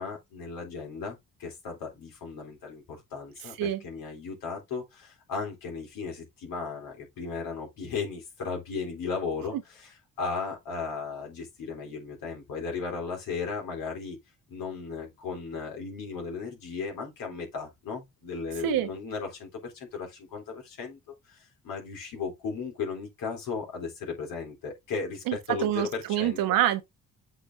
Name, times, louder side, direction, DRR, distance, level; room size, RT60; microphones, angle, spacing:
voice 1, 0.0-9.9 10.2-14.2 14.5-21.0 21.3-26.4, left 5 dB, 80° left, 3.7 m, -36 dB
voice 2, 25.3-26.8, right 12 dB, 85° right, 1.2 m, -26 dB
8.0 x 4.1 x 3.8 m
supercardioid pair, 55°, 33 cm